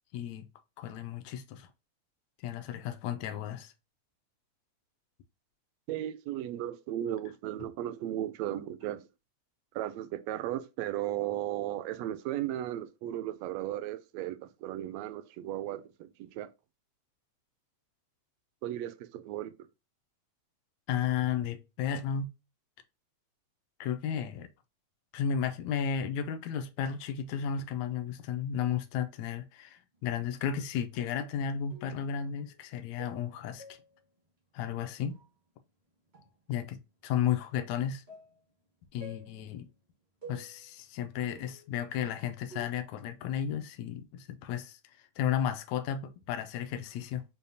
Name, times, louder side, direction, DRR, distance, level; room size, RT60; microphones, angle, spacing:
voice 1, 0.1-0.5 0.8-1.7 2.4-3.7 20.9-22.3 23.8-24.5 25.1-33.8 34.5-35.2 36.5-38.0 38.9-39.7 40.3-47.2, left 8 dB, 80° left, 1.9 m, -33 dB
voice 2, 5.9-9.0 9.7-16.5 18.6-19.5, right 12 dB, 80° right, 1.6 m, -35 dB
sound 1, 30.2-30.6 30.9-31.3 31.7-32.1 32.4-32.7 33.0-34.0 35.1-35.3 36.1-36.3 37.1-37.4 38.1-38.4 39.0-39.5 40.2-40.8 41.3-41.8 42.5-42.6, equal, 40° right, 0.6 m, -50 dB
6.8 x 2.3 x 2.6 m
omnidirectional pair, 3.3 m